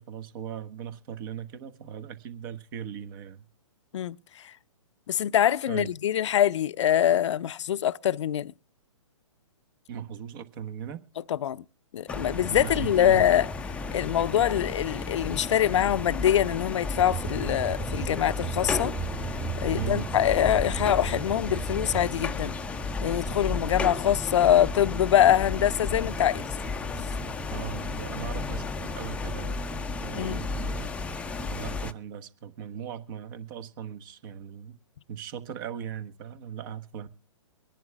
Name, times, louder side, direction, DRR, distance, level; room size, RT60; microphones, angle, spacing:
voice 1, 0.0-3.4 5.7-5.9 9.9-11.0 12.5-13.2 19.7-20.1 27.5-29.6 30.0-34.8 35.1-37.1, right 9 dB, 40° right, 1.2 m, -38 dB
voice 2, 5.1-8.5 11.3-11.6 11.9-13.5 13.9-18.9 19.6-22.5 23.0-26.4 30.2-30.5, left 10 dB, 65° left, 0.5 m, -24 dB
sound 1, 12.1-31.9, left 3 dB, 5° left, 0.6 m, -33 dB
sound 2, 16.9-22.1, right 6 dB, 25° right, 2.2 m, -36 dB
24.0 x 11.0 x 2.2 m
hypercardioid pair, 130°, 17 cm